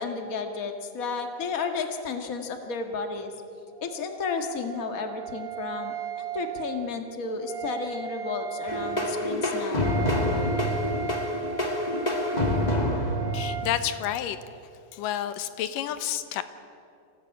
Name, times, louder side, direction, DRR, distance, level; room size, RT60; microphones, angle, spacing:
voice 1, 0.0-3.3 3.8-9.9, left 4 dB, 40° left, 5 dB, 1.3 m, -32 dB
Wind instrument woodwind instrument, 3.7-13.7, right 8 dB, 75° right, 0.5 m, -37 dB
sound 1, 8.7-14.1, left 1 dB, 20° left, 1.1 m, -27 dB
voice 2, 13.3-14.4 14.9-16.4, left 11 dB, 70° left, 11 dB, 2.6 m, -30 dB
25.0 x 17.0 x 8.9 m, 2.4 s
omnidirectional pair, 4.2 m